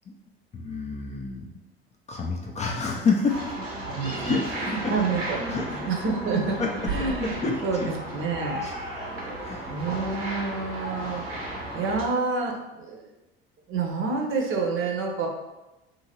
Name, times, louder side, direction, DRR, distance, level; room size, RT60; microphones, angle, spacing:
voice 1, 0.5-1.5 2.1-3.5 4.2-4.5 4.8-4.9 5.5-5.7 6.6-6.7 7.2-7.9 8.6-8.7 9.4-9.7, left 4 dB, 25° left, 0 dB, 0.4 m, -28 dB
sound 1, 3.3-12.0, right 1 dB, 80° right, 0.7 m, -34 dB
voice 2, 3.8-4.3 4.6-6.6 6.9-9.2 9.7-13.1 13.7-15.3, right 4 dB, 45° right, 1 dB, 0.7 m, -29 dB
2.7 x 2.6 x 2.8 m, 1.0 s
figure-of-eight pair, 60°, 30 cm